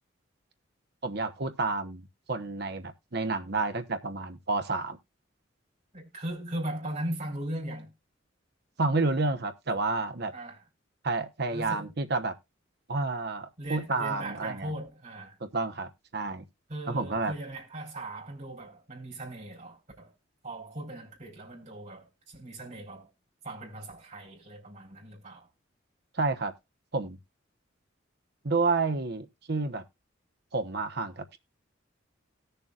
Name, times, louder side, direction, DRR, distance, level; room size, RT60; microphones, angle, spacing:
voice 1, 1.0-5.0 8.8-10.3 11.0-12.4 12.9-14.7 15.4-16.4 16.9-17.3 26.1-26.5 26.9-27.2 28.4-29.8 30.5-31.4, right 3 dB, 55° right, 1.1 m, -30 dB
voice 2, 5.9-7.9 10.3-10.6 11.5-11.9 13.6-15.4 16.7-20.1 20.4-23.1 23.4-25.5, right 1 dB, 40° right, 4.3 m, -38 dB
18.5 x 6.9 x 2.5 m
head